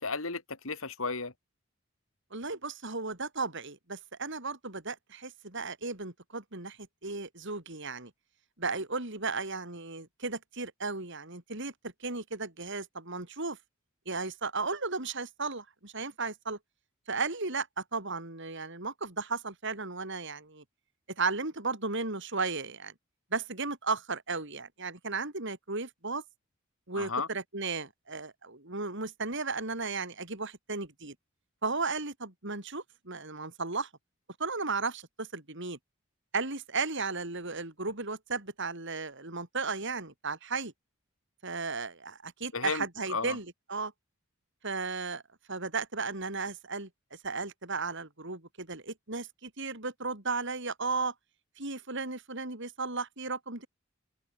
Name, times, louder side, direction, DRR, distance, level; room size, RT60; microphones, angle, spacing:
voice 1, 0.0-1.3 27.0-27.3 42.5-43.4, left 4 dB, 80° left, 2.9 m, -34 dB
voice 2, 2.3-8.1 8.6-13.6 14.0-16.6 17.1-20.6 21.2-22.9 23.3-26.2 26.9-31.1 31.6-33.9 34.4-35.8 36.3-40.7 41.4-43.9 44.6-45.2 45.5-46.9 47.2-51.1 51.6-53.7, right 4 dB, 60° right, 5.0 m, -35 dB
open air
head